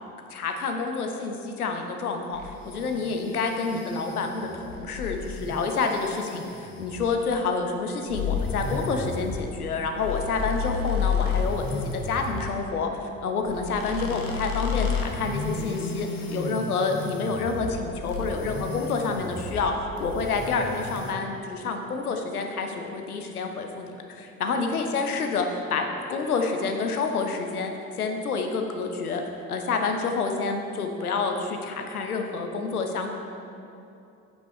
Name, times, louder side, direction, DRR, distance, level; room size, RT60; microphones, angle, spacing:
voice 1, 0.3-12.9 13.2-19.7 20.0-27.7 28.0-29.2 29.5-33.1, left 4 dB, 90° left, 4 dB, 0.7 m, -28 dB
sound 1, 2.3-7.2 8.1-12.5 13.5-17.8 18.1-19.7 20.0-21.1, left 5 dB, 50° left, 1.4 m, -32 dB
8.8 x 5.9 x 4.6 m, 2.7 s
figure-of-eight pair, 50°, 43 cm